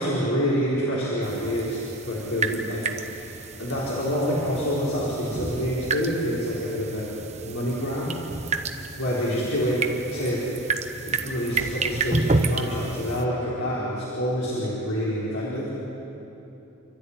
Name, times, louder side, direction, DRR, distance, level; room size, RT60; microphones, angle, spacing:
voice 1, 0.0-7.1 7.4-8.2 9.0-10.5 11.0-15.7, equal, 90° left, -7 dB, 4.2 m, -27 dB
sound 1, 1.2-13.2, right 3 dB, 30° right, 0.9 m, -30 dB
28.0 x 13.0 x 9.7 m, 3.0 s
head